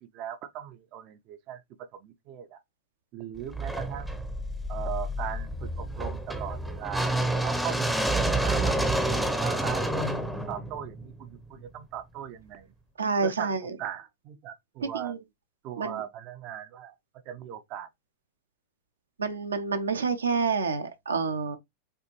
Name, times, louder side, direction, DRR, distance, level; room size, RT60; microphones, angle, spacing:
voice 1, 0.1-1.6 2.0-2.6 3.1-4.2 4.7-12.7 13.2-15.1 15.6-17.0 17.3-17.9, right 10 dB, 40° right, 0.6 m, -39 dB
sound 1, 3.5-11.6, right 1 dB, ahead, 0.7 m, -29 dB
voice 2, 13.0-13.7 14.8-15.2 15.8-16.0 19.2-21.6, right 5 dB, 70° right, 0.8 m, -28 dB
6.7 x 2.5 x 3.0 m
figure-of-eight pair, 90°, 0 cm